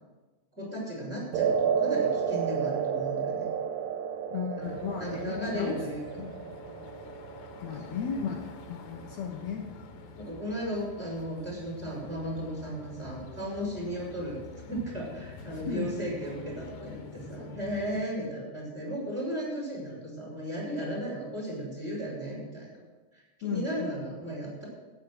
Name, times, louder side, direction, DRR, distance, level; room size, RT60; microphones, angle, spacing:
voice 1, 0.5-3.5 4.5-4.6 5.0-6.1 7.9-8.0 10.2-22.8 23.1-24.6, equal, 15° right, -3 dB, 5.3 m, -35 dB
sound 1, 1.3-9.7, right 7 dB, 80° right, 2.2 m, -32 dB
voice 2, 4.3-5.7 6.2-6.6 7.6-8.4 8.7-9.7 15.7-16.0 23.4-23.9, left 7 dB, 85° left, 0 dB, 1.5 m, -35 dB
sound 2, 4.6-18.1, left 4 dB, 65° left, 2.5 m, -47 dB
12.5 x 9.4 x 6.5 m, 1.2 s
omnidirectional pair, 4.9 m